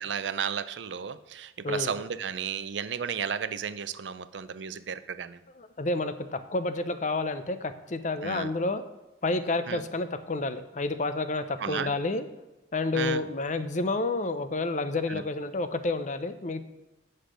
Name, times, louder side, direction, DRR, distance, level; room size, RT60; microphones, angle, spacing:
voice 1, 0.0-5.4 8.2-8.5 9.7-9.8 11.6-11.9 12.9-13.2 15.1-15.2, right 7 dB, 80° right, 13 dB, 0.5 m, -33 dB
voice 2, 1.6-2.0 5.5-8.8 9.2-12.3 12.7-16.6, left 2 dB, 45° left, 10 dB, 0.6 m, -30 dB
8.0 x 6.5 x 5.0 m, 1.0 s
head